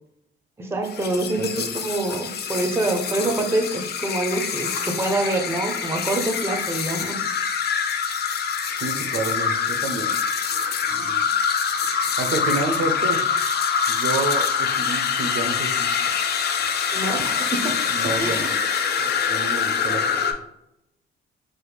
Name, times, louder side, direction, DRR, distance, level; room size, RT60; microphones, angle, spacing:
voice 1, 0.6-7.3 16.9-17.8 18.2-18.5, right 2 dB, 10° right, 4 dB, 0.5 m, -26 dB
sound 1, 0.8-20.3, left 6 dB, 55° left, 0.4 m, -25 dB
voice 2, 8.8-10.1 10.9-11.2 12.2-13.2 13.9-16.1 17.9-18.5 19.0-20.0, right 3 dB, 80° right, 5 dB, 0.6 m, -29 dB
3.2 x 2.0 x 3.3 m, 0.82 s
cardioid pair, 90°, 20 cm